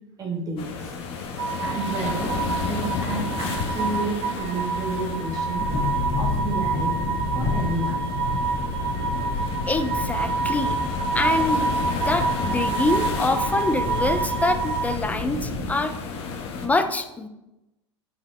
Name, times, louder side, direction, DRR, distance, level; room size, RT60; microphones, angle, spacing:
voice 1, 0.2-1.0 1.6-2.4 2.7-5.7 6.2-8.1, right 2 dB, 25° right, 0 dB, 1.8 m, -31 dB
sound 1, 0.6-16.7, left 4 dB, 40° left, 1.4 m, -32 dB
sound 2, 1.4-15.0, right 4 dB, 55° right, 1.1 m, -28 dB
sound 3, 5.5-15.7, left 2 dB, 55° left, 2.6 m, -30 dB
voice 2, 9.7-10.8 11.1-11.7 12.1-15.9 16.6-17.3, left 2 dB, 10° left, 8 dB, 0.7 m, -25 dB
9.0 x 5.7 x 4.4 m, 0.92 s
figure-of-eight pair, 85°, 15 cm